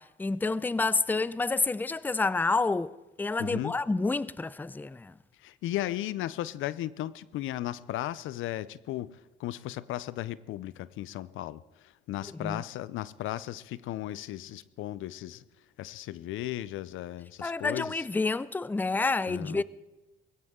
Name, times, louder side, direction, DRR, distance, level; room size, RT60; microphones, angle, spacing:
voice 1, 0.0-2.9 3.2-5.1 12.4-12.6 17.4-19.6, left 3 dB, 10° left, 0.4 m, -29 dB
voice 2, 3.4-3.7 5.4-15.4 15.8-18.0 19.3-19.6, left 14 dB, 85° left, 0.6 m, -36 dB
20.5 x 16.0 x 3.7 m
cardioid pair, 90°, 20 cm